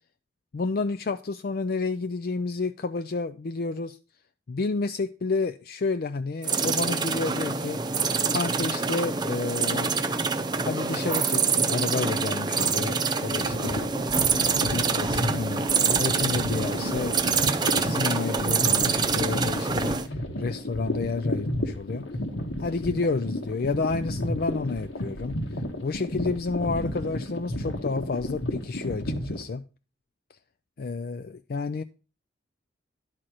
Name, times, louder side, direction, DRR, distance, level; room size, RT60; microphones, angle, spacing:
voice 1, 0.5-4.0 4.5-7.8 8.3-9.9 10.6-13.9 14.6-17.2 17.7-22.1 22.6-25.4 25.8-29.6 30.8-31.8, left 4 dB, 50° left, 0.4 m, -30 dB
sound 1, 6.4-20.1, right 5 dB, 25° right, 0.6 m, -26 dB
sound 2, 13.3-29.4, left 1 dB, 85° left, 1.7 m, -32 dB
11.0 x 4.4 x 6.3 m
head